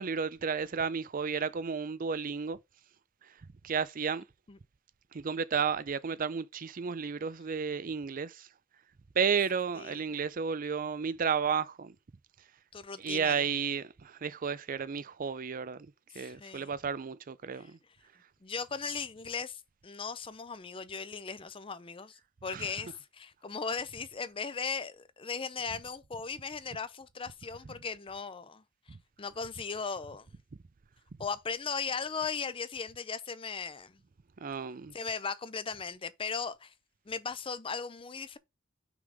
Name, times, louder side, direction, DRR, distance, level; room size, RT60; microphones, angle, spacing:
voice 1, 0.0-2.6 3.6-4.2 5.1-8.5 9.1-12.0 13.0-15.9 16.1-17.8 22.5-22.7 28.9-29.0 34.4-34.9, right 6 dB, 45° right, 0.5 m, -32 dB
voice 2, 12.7-13.5 16.1-16.7 17.5-17.7 18.4-28.6 29.2-30.3 31.2-34.0 34.9-36.7 37.1-38.4, left 5 dB, 25° left, 0.6 m, -37 dB
6.1 x 3.7 x 4.9 m
head